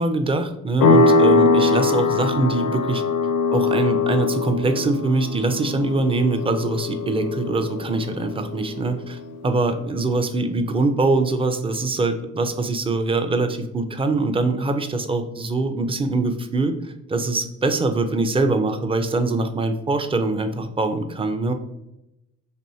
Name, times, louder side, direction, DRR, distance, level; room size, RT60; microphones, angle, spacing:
voice 1, 0.0-3.0 3.5-16.8 17.1-21.5, right 3 dB, 20° right, 7 dB, 0.4 m, -23 dB
sound 1, 0.8-9.2, left 3 dB, 85° left, 0.5 m, -21 dB
4.3 x 3.0 x 2.7 m, 0.90 s
cardioid pair, 90°, 30 cm